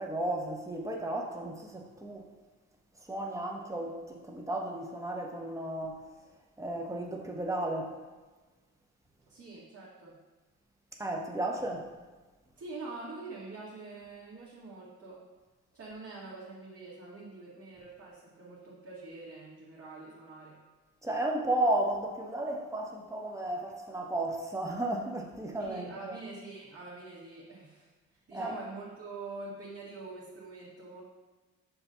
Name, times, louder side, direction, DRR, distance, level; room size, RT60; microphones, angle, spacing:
voice 1, 0.0-2.3 3.0-6.3 6.6-7.9 11.0-11.9 21.0-26.2 28.3-28.6, right 1 dB, 10° right, 0 dB, 1.0 m, -34 dB
voice 2, 9.3-10.2 12.6-15.2 15.7-20.6 25.6-27.9 28.3-31.0, right 3 dB, 50° right, -10 dB, 2.0 m, -45 dB
6.8 x 2.6 x 5.6 m, 1.3 s
cardioid pair, 90°, 30 cm